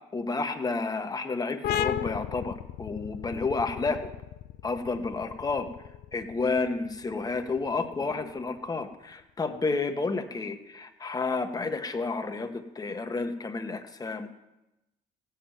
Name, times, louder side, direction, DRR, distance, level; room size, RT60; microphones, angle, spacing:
voice 1, 0.1-4.1 4.6-5.7 6.1-14.3, left 3 dB, 20° left, 7 dB, 1.3 m, -31 dB
sound 1, 1.6-8.9, left 11 dB, 75° left, 0.6 m, -36 dB
16.0 x 7.6 x 8.9 m, 0.96 s
cardioid pair, 110°, 17 cm